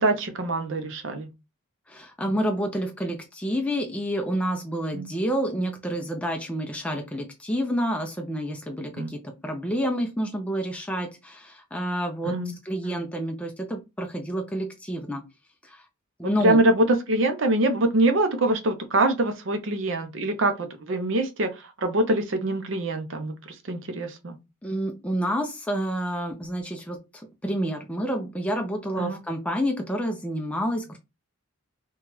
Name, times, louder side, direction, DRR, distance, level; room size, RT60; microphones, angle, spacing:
voice 1, 0.0-1.3 4.9-5.1 9.0-9.1 12.2-12.5 12.8-13.0 16.4-21.5 21.8-24.4 29.0-29.2, right 2 dB, 60° right, 0.6 m, -24 dB
voice 2, 1.9-12.4 12.6-15.2 15.6-15.8 16.2-16.6 24.6-27.0 27.4-31.0, equal, 5° left, 0.4 m, -29 dB
2.9 x 2.3 x 3.0 m
head